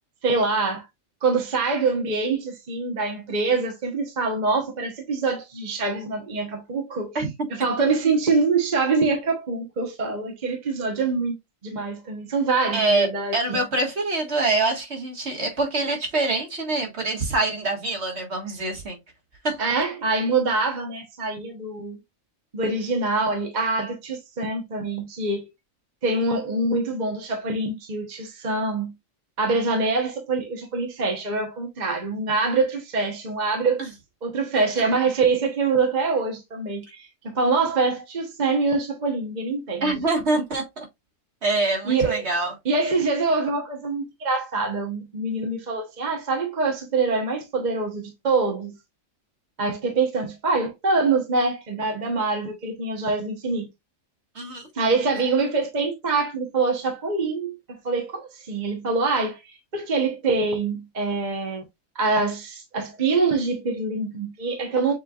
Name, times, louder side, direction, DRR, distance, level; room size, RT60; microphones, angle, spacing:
voice 1, 0.2-0.9 1.2-7.2 7.5-11.3 11.6-13.6 19.6-22.0 22.5-25.4 26.0-28.9 29.4-33.8 34.2-40.0 40.3-40.4 41.8-42.3 42.6-48.7 49.6-53.7 54.7-61.6 61.9-64.9, right 3 dB, 35° right, 1.1 m, -25 dB
voice 2, 12.7-13.1 13.3-19.0 19.4-19.6 33.8-33.9 39.8-40.9 41.4-42.5 54.4-54.6, right 2 dB, 55° right, 1.9 m, -25 dB
6.8 x 3.3 x 2.4 m
omnidirectional pair, 1.3 m